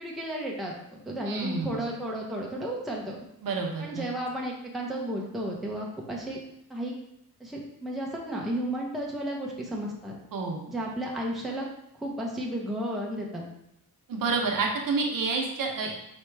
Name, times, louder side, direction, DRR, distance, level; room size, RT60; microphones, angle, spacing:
voice 1, 0.0-3.2 3.8-6.4 6.7-6.9 7.4-10.2 10.7-11.6 11.9-13.4, right 1 dB, ahead, -2 dB, 0.6 m, -33 dB
voice 2, 1.3-1.8 3.4-4.0 10.3-10.7 14.1-15.9, right 4 dB, 60° right, 1 dB, 0.9 m, -29 dB
4.5 x 2.9 x 3.3 m, 0.78 s
wide cardioid pair, 145°, 37 cm